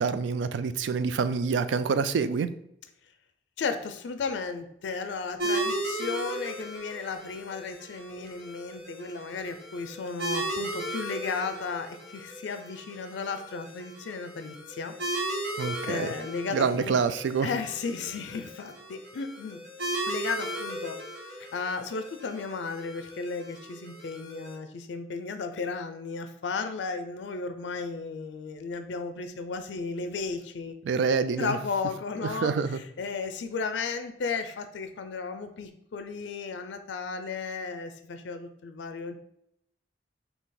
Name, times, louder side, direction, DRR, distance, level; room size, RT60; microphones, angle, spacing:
voice 1, 0.0-2.5 15.6-16.1 16.5-17.5 30.8-31.6 32.4-32.8, right 5 dB, 90° right, 12 dB, 0.3 m, -26 dB
voice 2, 3.6-14.9 15.9-17.0 17.4-19.6 20.1-21.0 21.4-30.7 31.4-39.2, left 4 dB, 85° left, 9 dB, 0.4 m, -34 dB
sound 1, 5.4-24.5, right 1 dB, 65° right, 1.3 m, -36 dB
4.1 x 2.8 x 3.8 m, 0.75 s
head